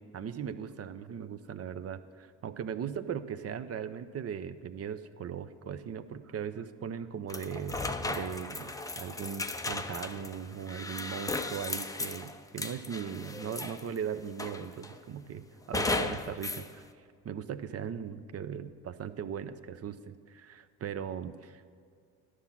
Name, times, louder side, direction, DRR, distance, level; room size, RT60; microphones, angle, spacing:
voice 1, 0.0-16.9 17.2-21.7, right 8 dB, 35° right, 12 dB, 0.6 m, -39 dB
sound 1, 7.3-14.0 14.4-15.0 15.7-16.7, left 2 dB, 10° left, 0.5 m, -36 dB
11.5 x 6.1 x 5.6 m, 2.2 s
hypercardioid pair, 55°, 44 cm